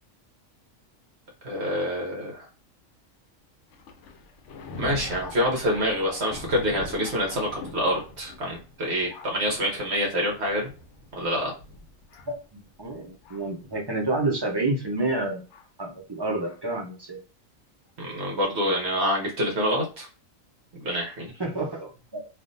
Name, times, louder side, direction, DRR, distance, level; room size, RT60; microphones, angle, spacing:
voice 1, 1.4-2.5 4.8-10.7 11.2-11.5 18.0-20.1 20.7-21.3, equal, 60° right, -1 dB, 1.1 m, -26 dB
Thunder, 3.7-13.6 14.4-14.5 15.5-15.7 16.4-16.6, left 3 dB, 70° left, 0.9 m, -43 dB
voice 2, 12.3-15.4 15.8-17.2 21.4-22.3, right 2 dB, 35° right, 1 dB, 0.4 m, -29 dB
3.4 x 2.4 x 2.5 m, 0.33 s
omnidirectional pair, 1.4 m